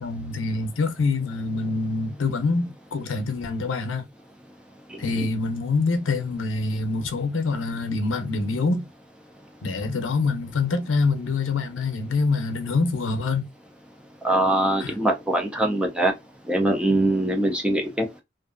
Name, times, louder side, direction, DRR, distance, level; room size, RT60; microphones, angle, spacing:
voice 1, 0.0-4.1 5.0-8.9 9.6-13.5 14.8-14.9, left 3 dB, 90° left, 0.6 m, -25 dB
voice 2, 14.2-16.1 16.5-18.2, right 1 dB, 5° right, 0.4 m, -22 dB
2.5 x 2.3 x 2.4 m
head